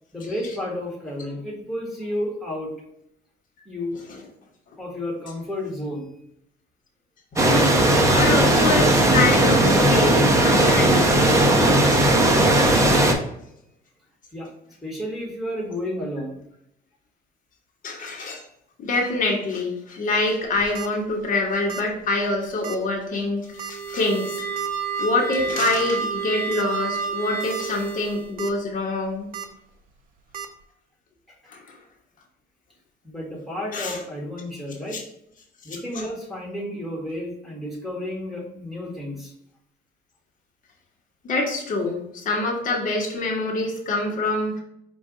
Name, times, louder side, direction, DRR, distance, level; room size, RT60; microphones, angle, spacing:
voice 1, 0.1-2.7 3.6-4.0 4.8-6.1 14.3-14.5 14.8-16.4 31.3-31.4 33.0-35.0 35.6-39.3, left 1 dB, ahead, -3 dB, 1.6 m, -31 dB
sound 1, 7.4-13.1, right 1 dB, 15° right, 0.8 m, -17 dB
voice 2, 8.1-12.9 17.8-18.4 18.8-24.4 25.0-29.3 31.5-31.8 33.7-34.0 34.9-35.0 35.7-36.0 41.2-44.6, left 2 dB, 50° left, -1 dB, 1.2 m, -26 dB
sound 2, 20.4-20.9 21.7-21.9 22.2-22.3 22.6-22.8 23.6-23.9 24.6-24.7 25.6-25.7 26.1-26.2 26.5-26.6 27.3-27.6 28.0-28.5 29.3-29.5 30.3-30.5, right 8 dB, 60° right, 0.6 m, -34 dB
sound 3, 23.4-28.3, right 6 dB, 15° left, 1.2 m, -30 dB
5.4 x 2.5 x 3.8 m, 0.78 s
cardioid pair, 110°, 17 cm